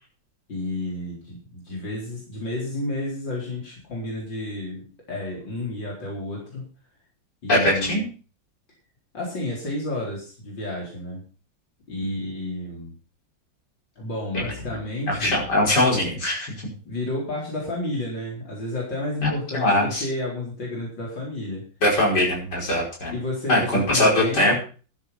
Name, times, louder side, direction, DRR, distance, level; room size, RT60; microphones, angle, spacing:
voice 1, 0.5-6.6 7.4-8.0 9.1-11.2 11.9-12.9 14.0-15.4 16.8-21.6 23.1-24.5, left 1 dB, 85° left, -3 dB, 4.9 m, -31 dB
voice 2, 7.5-8.0 14.3-14.4 15.1-16.5 19.2-20.0 21.8-23.1 23.5-24.5, left 1 dB, 65° left, -2 dB, 5.9 m, -21 dB
12.5 x 10.0 x 5.8 m, 0.37 s
omnidirectional pair, 2.0 m